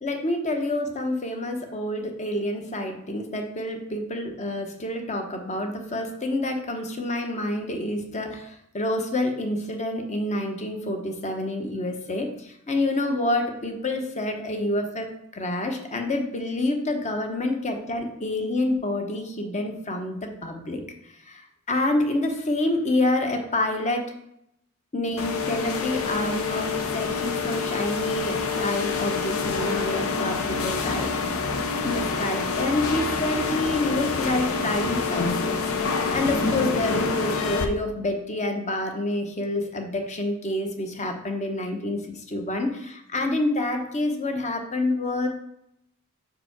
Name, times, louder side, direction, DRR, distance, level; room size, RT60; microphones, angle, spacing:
voice 1, 0.0-20.8 21.3-21.4 21.7-24.1 24.9-31.1 31.8-45.3, left 1 dB, 35° left, 4 dB, 1.0 m, -28 dB
sound 1, 25.2-37.6, left 4 dB, 70° left, 0.8 m, -27 dB
5.5 x 5.0 x 5.9 m, 0.78 s
head